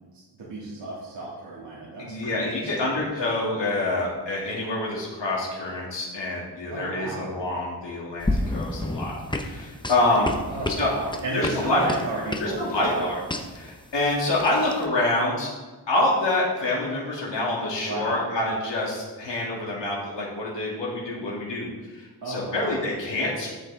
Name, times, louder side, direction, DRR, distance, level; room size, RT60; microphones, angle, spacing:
voice 1, 0.1-2.9 6.7-7.2 10.5-13.1 17.8-18.2 22.2-22.7, right 2 dB, 75° right, -8 dB, 2.5 m, -33 dB
voice 2, 2.0-10.3 10.8-10.9 11.3-11.8 12.4-13.2 13.6-15.5 15.9-23.5, left 2 dB, 80° left, -5 dB, 2.6 m, -26 dB
sound 1, 8.2-14.8, left 1 dB, 10° left, 0.6 m, -31 dB
11.5 x 7.8 x 3.5 m, 1.3 s
wide cardioid pair, 160°, 43 cm